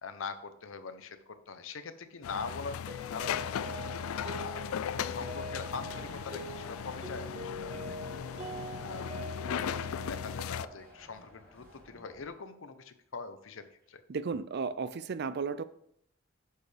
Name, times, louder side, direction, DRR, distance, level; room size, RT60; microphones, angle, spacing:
voice 1, 0.0-4.6 5.0-9.2 9.5-14.0, left 4 dB, 65° left, 11 dB, 0.7 m, -43 dB
sound 1, 2.2-10.7, left 8 dB, 90° left, 0.3 m, -37 dB
Mallet percussion, 2.9-11.0, right 1 dB, 30° right, 0.9 m, -44 dB
sound 2, 3.2-12.3, left 1 dB, 10° left, 3.7 m, -52 dB
voice 2, 14.1-15.6, right 5 dB, 50° right, 15 dB, 0.4 m, -34 dB
10.5 x 6.5 x 3.4 m, 0.71 s
head